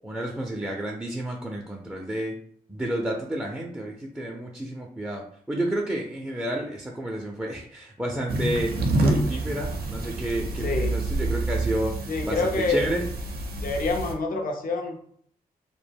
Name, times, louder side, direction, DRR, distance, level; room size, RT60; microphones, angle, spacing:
voice 1, 0.0-2.4 2.7-8.7 9.0-13.1, right 1 dB, 5° right, -1 dB, 0.5 m, -30 dB
sound 1, 8.3-14.1, right 2 dB, 75° right, 0.5 m, -28 dB
voice 2, 10.6-11.0 12.1-12.9 13.6-15.0, left 3 dB, 60° left, 3 dB, 0.6 m, -26 dB
2.1 x 2.1 x 3.4 m, 0.62 s
supercardioid pair, 50°, 16 cm